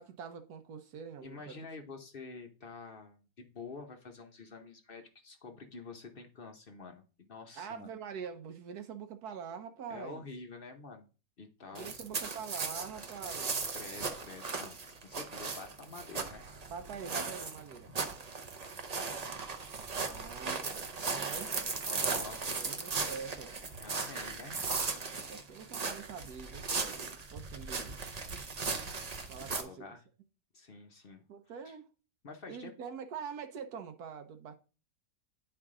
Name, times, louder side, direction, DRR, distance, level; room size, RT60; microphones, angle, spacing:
voice 1, 0.0-1.6 7.5-10.3 11.7-13.7 16.7-17.9 20.1-21.5 22.6-23.5 25.1-28.0 29.3-29.7 31.3-31.9 32.5-34.5, right 7 dB, 70° right, 1.2 m, -45 dB
voice 2, 1.2-7.9 9.9-11.1 11.4-12.0 13.7-16.7 17.9-18.3 21.9-22.9 23.8-24.6 25.2-25.3 29.4-30.0 30.5-31.2 31.6-31.8 32.2-32.7, left 4 dB, 50° left, 0.7 m, -48 dB
sound 1, 11.8-29.6, right 4 dB, 45° right, 0.5 m, -37 dB
9.6 x 4.7 x 3.7 m
omnidirectional pair, 1.7 m